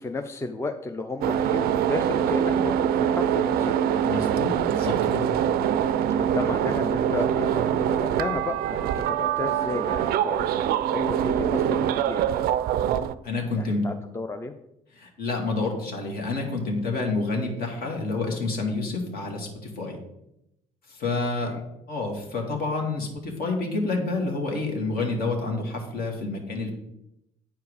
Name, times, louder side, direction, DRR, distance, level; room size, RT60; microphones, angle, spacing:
voice 1, 0.0-3.8 6.2-12.5 13.5-14.5 21.4-21.6, left 3 dB, 15° left, 7 dB, 0.6 m, -33 dB
sound 1, 1.2-13.1, right 9 dB, 55° right, 0.4 m, -24 dB
voice 2, 4.0-5.3 13.2-13.8 14.9-20.0 20.9-21.6 21.9-26.7, left 3 dB, 55° left, 1 dB, 2.2 m, -28 dB
8.8 x 4.6 x 4.9 m, 0.84 s
hypercardioid pair, 55°, 18 cm